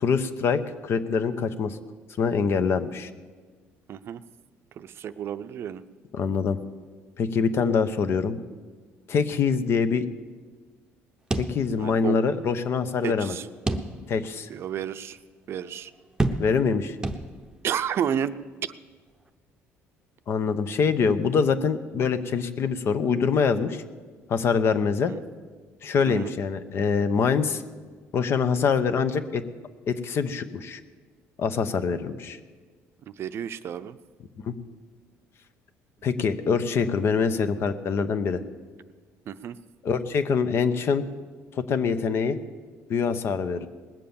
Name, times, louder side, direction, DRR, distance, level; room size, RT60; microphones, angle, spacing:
voice 1, 0.0-1.8 2.2-3.1 6.1-6.6 7.2-8.4 9.1-10.0 11.4-13.4 14.1-14.5 16.4-17.0 20.3-23.8 24.3-25.1 25.8-27.6 28.1-29.4 29.9-30.8 31.4-32.4 34.5-34.6 36.0-38.4 39.8-41.0 41.6-42.4 42.9-43.7, left 5 dB, 50° left, 11 dB, 0.9 m, -24 dB
voice 2, 3.9-4.2 4.8-5.8 11.8-12.2 13.0-13.5 14.5-15.2 15.5-15.9 17.6-18.3 18.6-18.7 25.0-25.2 26.1-26.3 33.1-34.0 39.3-39.6, right 9 dB, 50° right, 12 dB, 0.6 m, -31 dB
sound 1, 11.3-12.2 12.5-12.6 13.7-14.3 14.8-14.9 16.2-16.8 17.0-17.7, right 2 dB, 15° right, 0.8 m, -29 dB
20.0 x 7.6 x 7.1 m, 1.5 s
cardioid pair, 115°, 5 cm